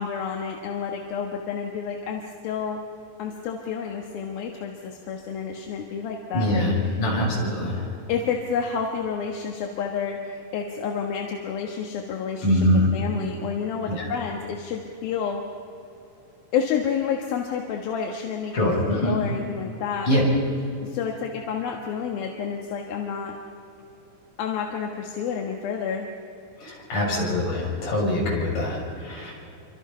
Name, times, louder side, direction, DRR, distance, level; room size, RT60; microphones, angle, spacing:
voice 1, 0.0-2.8 3.2-7.0 8.1-12.7 12.9-15.4 16.5-20.1 20.8-23.4 24.4-26.1, left 6 dB, 85° left, 2 dB, 3.3 m, -30 dB
voice 2, 6.3-7.8 12.4-12.8 13.9-14.0 18.5-19.1 20.1-20.2 26.6-28.8 29.0-29.3, left 1 dB, 60° left, -3 dB, 8.3 m, -23 dB
27.5 x 25.5 x 5.7 m, 2.6 s
omnidirectional pair, 4.1 m